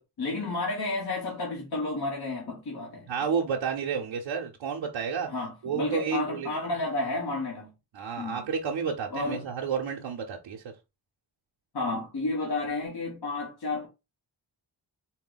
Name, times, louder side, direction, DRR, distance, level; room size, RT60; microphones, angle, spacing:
voice 1, 0.2-3.1 5.3-7.7 8.2-8.5 9.1-9.5 11.7-13.9, left 2 dB, 55° left, 1.3 m, -31 dB
voice 2, 3.1-5.3 5.6-6.6 7.9-10.6, right 6 dB, 80° right, 0.7 m, -31 dB
4.3 x 2.1 x 3.8 m
cardioid pair, 75°, 45 cm